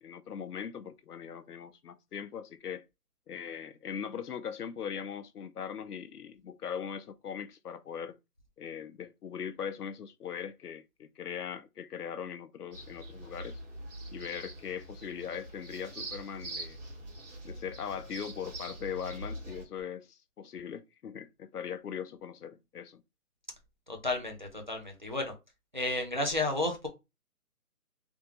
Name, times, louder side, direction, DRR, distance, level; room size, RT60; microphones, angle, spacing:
voice 1, 0.0-2.8 3.3-8.2 8.6-13.6 14.1-16.8 17.4-23.0, left 8 dB, 75° left, 0.6 m, -40 dB
sound 1, 12.7-19.6, right 1 dB, 50° right, 1.8 m, -44 dB
voice 2, 23.9-25.3 25.7-26.9, left 2 dB, 30° right, 0.5 m, -32 dB
3.4 x 2.3 x 3.0 m
figure-of-eight pair, 160°, 47 cm